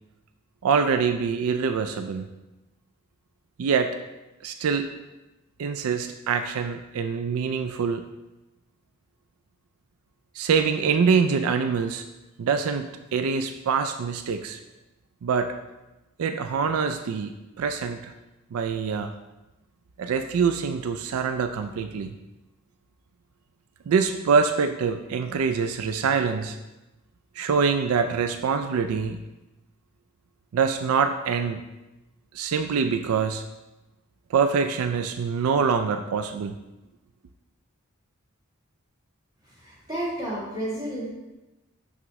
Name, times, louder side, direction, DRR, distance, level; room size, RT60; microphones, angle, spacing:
voice 1, 0.6-2.3 3.6-4.0 4.4-4.9 5.6-8.0 10.4-12.0 12.4-14.6 15.2-15.5 16.2-18.1 18.5-19.1 20.0-22.1 23.9-26.6 27.4-29.2 30.5-31.6 32.3-33.4 34.3-36.6, right 5 dB, 85° right, 9 dB, 0.4 m, -25 dB
voice 2, 39.6-41.1, right 1 dB, 20° right, -8 dB, 2.1 m, -31 dB
6.0 x 5.9 x 3.1 m, 1.0 s
head